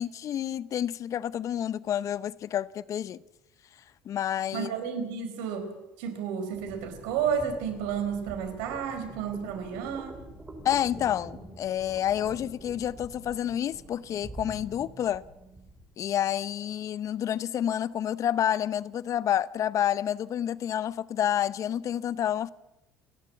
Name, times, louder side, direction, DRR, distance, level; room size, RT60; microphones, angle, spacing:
voice 1, 0.0-3.2 4.0-4.7 10.6-15.2 16.0-22.5, left 10 dB, 50° left, 0.8 m, -29 dB
voice 2, 4.5-10.2, right 7 dB, 80° right, 4.5 m, -32 dB
sound 1, 6.5-15.9, right 2 dB, 20° right, 5.7 m, -46 dB
29.5 x 11.5 x 8.5 m
supercardioid pair, 80°, 7 cm